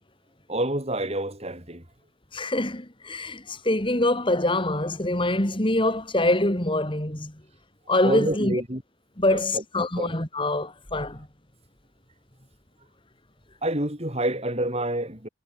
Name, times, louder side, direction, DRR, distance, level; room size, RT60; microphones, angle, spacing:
voice 1, 0.5-1.8 8.0-8.8 9.3-9.6 10.0-10.1 13.6-15.3, right 1 dB, 30° right, 6.6 m, -28 dB
voice 2, 2.3-7.3 7.9-8.6 9.2-11.3, left 1 dB, 25° left, 2.6 m, -24 dB
head